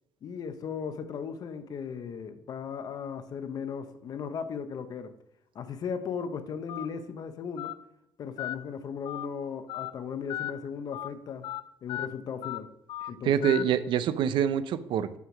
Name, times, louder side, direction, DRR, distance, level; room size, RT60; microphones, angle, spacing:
voice 1, 0.2-5.1 5.5-7.8 8.2-11.5 11.8-12.7 13.1-13.8, left 6 dB, 45° left, 0.7 m, -36 dB
Telephone, 6.7-6.9 7.6-7.7 8.4-8.6 9.1-9.3 9.7-9.9 10.3-10.5 10.9-11.1 11.4-11.6 11.9-12.1 12.4-12.6 12.9-13.1 13.4-13.6, left 14 dB, 80° left, 0.4 m, -35 dB
voice 2, 13.2-15.2, right 9 dB, 65° right, 0.5 m, -26 dB
5.8 x 5.8 x 6.0 m
cardioid pair, 155°, 9 cm